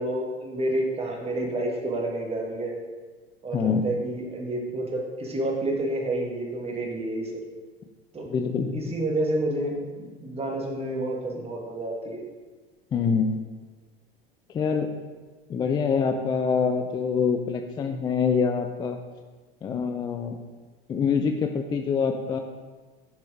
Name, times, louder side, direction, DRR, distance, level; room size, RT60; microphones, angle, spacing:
voice 1, 0.0-2.8 3.4-7.3 8.1-8.3 8.7-12.2, right 1 dB, 20° right, 0 dB, 1.6 m, -29 dB
voice 2, 3.5-3.9 8.3-8.8 12.9-13.4 14.5-14.9 15.5-19.0 19.6-20.4 20.9-22.4, left 6 dB, 15° left, 6 dB, 0.3 m, -25 dB
6.9 x 5.6 x 3.8 m, 1.3 s
figure-of-eight pair, 75°, 30 cm